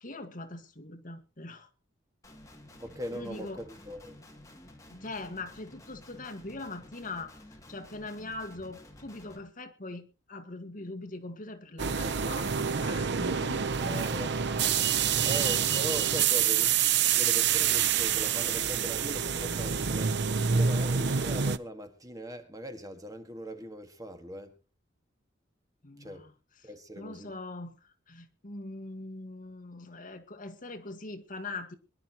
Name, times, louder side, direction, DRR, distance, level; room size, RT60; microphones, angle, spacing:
voice 1, 0.0-1.7 3.1-3.6 4.9-7.4 7.7-14.0 15.0-15.6 25.8-26.3 26.9-31.7, left 2 dB, 45° left, 1.6 m, -42 dB
Guitar, 2.2-9.4, left 1 dB, 15° left, 2.4 m, -52 dB
voice 2, 2.8-4.2 13.8-14.4 15.2-16.8 17.2-20.2 20.5-24.5 26.0-26.3 26.6-27.3, equal, 20° right, 1.7 m, -40 dB
sound 1, 11.8-21.6, right 7 dB, 60° right, 0.7 m, -27 dB
23.5 x 11.5 x 2.9 m
head